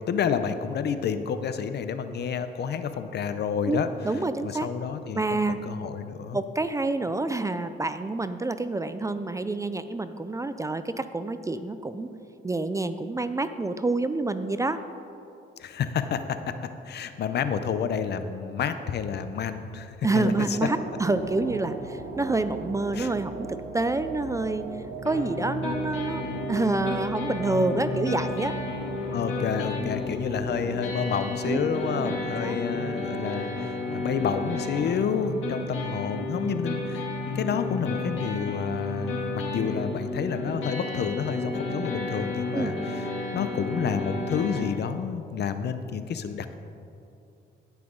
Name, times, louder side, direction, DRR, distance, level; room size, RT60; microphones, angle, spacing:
voice 1, 0.0-3.9 4.4-6.4 15.6-20.6 22.9-23.1 27.9-28.0 29.1-37.0 37.3-43.1 43.3-46.6, left 7 dB, 55° left, 10 dB, 0.6 m, -29 dB
voice 2, 3.6-4.7 5.1-5.6 6.3-12.1 12.4-14.8 20.0-24.7 25.0-28.5 31.4-31.6 32.0-32.2 32.4-32.6 42.5-42.7, right 2 dB, 15° right, 11 dB, 0.4 m, -28 dB
sound 1, 20.0-32.6, right 4 dB, 75° right, 1.1 m, -39 dB
sound 2, 25.1-44.6, left 2 dB, 75° left, 2.7 m, -32 dB
17.0 x 5.8 x 3.8 m, 2.7 s
cardioid pair, 90°, 20 cm